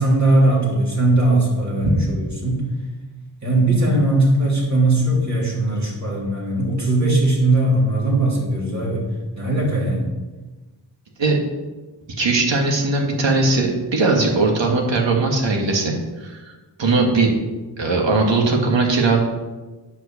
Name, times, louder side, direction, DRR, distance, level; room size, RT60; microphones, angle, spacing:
voice 1, 0.0-2.6 3.4-9.0 9.3-10.1, right 2 dB, 40° right, -4 dB, 3.2 m, -19 dB
voice 2, 12.2-16.4 16.8-17.3 17.8-19.2, right 3 dB, 75° right, 1 dB, 2.0 m, -19 dB
9.3 x 5.6 x 6.6 m, 1.2 s
wide cardioid pair, 110°, 44 cm